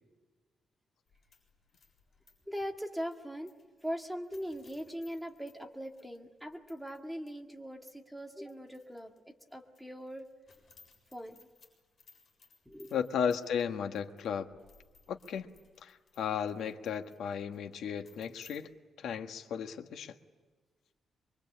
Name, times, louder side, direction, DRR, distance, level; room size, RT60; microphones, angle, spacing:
sound 1, 1.1-7.0 7.3-7.4 7.9-9.2 9.5-18.6, left 4 dB, 35° left, 7.4 m, -64 dB
voice 1, 2.5-3.5 3.8-10.3 11.1-11.5 12.7-13.0, equal, ahead, 2 dB, 2.1 m, -41 dB
voice 2, 12.9-14.5 15.1-15.5 15.8-18.7 19.0-20.1, left 7 dB, 70° left, 6 dB, 1.5 m, -35 dB
24.5 x 23.5 x 8.7 m, 1.3 s
wide cardioid pair, 180°, 0 cm